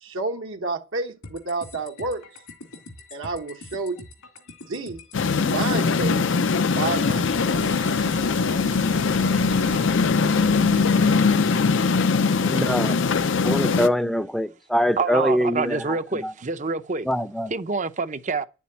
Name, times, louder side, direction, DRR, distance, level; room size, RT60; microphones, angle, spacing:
voice 1, 0.0-2.4 3.1-4.1 4.7-5.0 5.4-6.3 6.7-7.8, right 3 dB, 60° right, 1.1 m, -30 dB
sound 1, 1.2-9.2, left 2 dB, 80° left, 2.4 m, -44 dB
sound 2, 5.1-13.9, left 4 dB, 60° left, 0.5 m, -21 dB
sound 3, 6.9-12.2, right 2 dB, 90° right, 2.1 m, -38 dB
voice 2, 12.4-13.0 13.4-16.3 17.1-17.5, equal, ahead, 0.6 m, -24 dB
voice 3, 15.0-17.1 17.5-18.5, right 4 dB, 35° right, 0.7 m, -26 dB
10.0 x 7.2 x 8.5 m
head